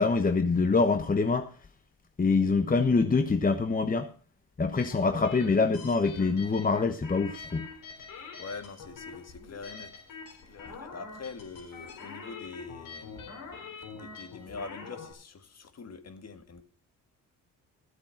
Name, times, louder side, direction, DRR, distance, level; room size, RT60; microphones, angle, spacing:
voice 1, 0.0-1.5 2.2-4.1 4.6-7.7, left 4 dB, 25° left, 1.0 m, -25 dB
sound 1, 4.8-15.1, left 4 dB, 75° left, 3.8 m, -45 dB
voice 2, 8.4-9.9 10.5-16.6, left 4 dB, 50° left, 1.9 m, -44 dB
13.0 x 8.2 x 5.8 m
supercardioid pair, 70°, 33 cm